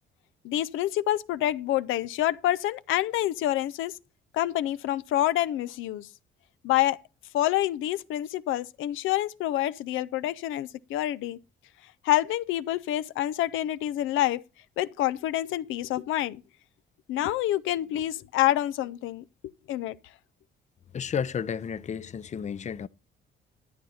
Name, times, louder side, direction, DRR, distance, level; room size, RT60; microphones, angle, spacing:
voice 1, 0.4-3.9 4.3-6.1 6.6-7.0 7.3-11.4 12.0-14.4 14.8-16.4 17.1-19.2 19.7-20.0, left 13 dB, 90° left, 0.6 m, -27 dB
voice 2, 20.9-22.9, left 7 dB, 35° left, 0.6 m, -32 dB
12.0 x 9.2 x 4.2 m
cardioid pair, 90°, 20 cm